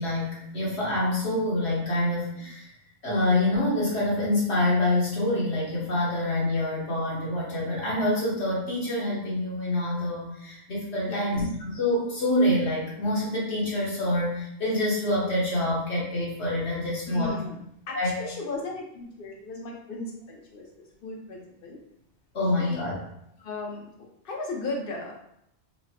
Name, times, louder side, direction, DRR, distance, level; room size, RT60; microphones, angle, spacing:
voice 1, 0.0-2.7 3.0-17.3 17.9-18.1 22.3-22.9, left 1 dB, 70° left, -5 dB, 1.4 m, -26 dB
voice 2, 17.0-17.6 17.9-20.7 21.0-21.8 22.6-22.8 23.4-25.2, left 2 dB, 55° left, 0 dB, 0.9 m, -36 dB
4.9 x 2.0 x 2.8 m, 0.76 s
omnidirectional pair, 1.2 m